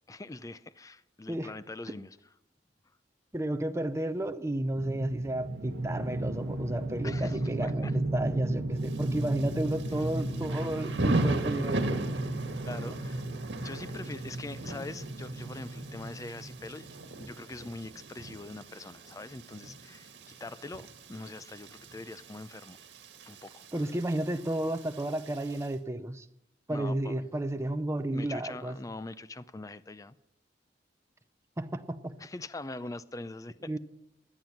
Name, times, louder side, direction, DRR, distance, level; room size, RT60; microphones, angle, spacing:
voice 1, 0.1-2.1 7.0-7.9 12.6-13.3 13.6-22.8 23.3-23.8 26.7-27.3 28.1-30.1 32.2-33.7, left 2 dB, 20° left, 0.5 m, -43 dB
voice 2, 3.3-7.9 8.1-12.2 12.8-13.0 23.7-26.3 26.7-28.8 31.6-32.2 33.7-33.8, right 1 dB, 15° right, 0.7 m, -32 dB
sound 1, 4.8-17.0, right 1 dB, 70° right, 1.2 m, -35 dB
Thunder / Rain, 8.8-25.7, right 2 dB, 85° right, 1.6 m, -38 dB
17.0 x 11.0 x 5.8 m
head